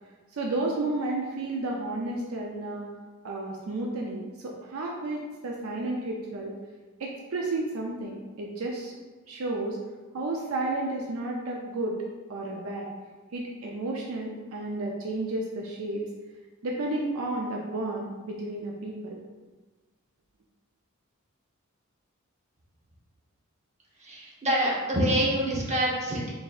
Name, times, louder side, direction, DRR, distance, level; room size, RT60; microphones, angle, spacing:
voice 1, 0.3-2.9 3.2-6.6 7.0-9.0 9.3-9.8 10.1-12.0 12.3-12.9 13.3-16.1 16.6-19.2, right 2 dB, 70° right, -1 dB, 0.5 m, -32 dB
voice 2, 24.0-26.3, right 1 dB, 35° right, -4 dB, 0.9 m, -26 dB
3.9 x 3.9 x 2.4 m, 1.3 s
head